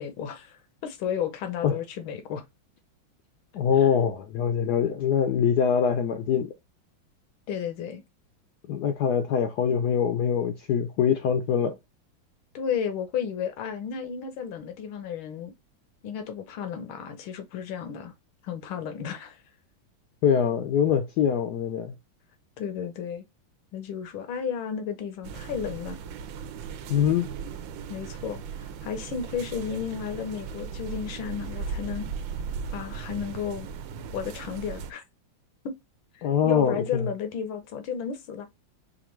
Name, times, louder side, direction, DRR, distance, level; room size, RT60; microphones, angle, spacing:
voice 1, 0.0-2.4 3.8-3.9 7.5-8.0 12.5-15.5 16.0-18.1 18.4-19.4 22.6-23.2 23.7-26.0 27.9-28.4 28.8-32.1 32.7-33.7 34.1-35.0 35.6-35.7 36.1-38.5, left 7 dB, 90° left, 1.7 m, -33 dB
voice 2, 3.5-6.5 8.7-11.8 20.2-21.9 26.9-27.3 36.2-37.1, left 8 dB, 75° left, 1.0 m, -24 dB
sound 1, 25.2-34.9, right 6 dB, 80° right, 1.3 m, -37 dB
5.0 x 2.6 x 3.0 m
omnidirectional pair, 2.2 m